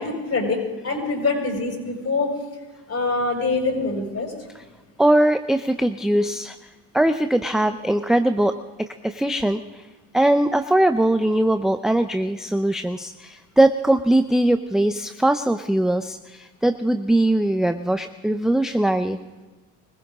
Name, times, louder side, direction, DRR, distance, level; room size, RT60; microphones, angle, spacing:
voice 1, 0.0-2.3 2.9-4.3, left 3 dB, 35° left, 1 dB, 6.8 m, -24 dB
voice 2, 5.0-6.5 6.9-8.6 9.0-9.6 10.1-19.2, right 1 dB, ahead, 8 dB, 0.6 m, -20 dB
24.0 x 16.0 x 3.7 m, 1.2 s
supercardioid pair, 75°, 42 cm